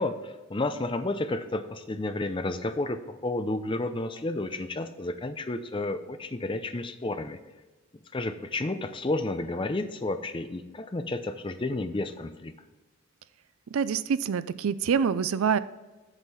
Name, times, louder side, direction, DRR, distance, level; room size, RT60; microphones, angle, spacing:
voice 1, 0.0-7.4 8.1-12.5, left 2 dB, 25° left, 10 dB, 0.5 m, -31 dB
voice 2, 13.7-15.6, right 6 dB, 75° right, 16 dB, 0.4 m, -26 dB
8.0 x 7.4 x 4.1 m, 1.2 s
head